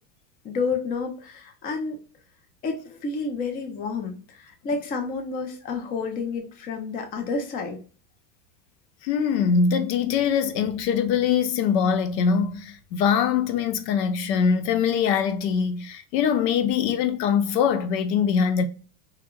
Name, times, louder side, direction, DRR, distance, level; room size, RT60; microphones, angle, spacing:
voice 1, 0.4-2.0 2.6-7.8, left 4 dB, 20° left, 0.4 m, -30 dB
voice 2, 9.0-18.6, left 7 dB, 90° left, 0.6 m, -23 dB
2.4 x 2.1 x 2.9 m
supercardioid pair, 125°, 48 cm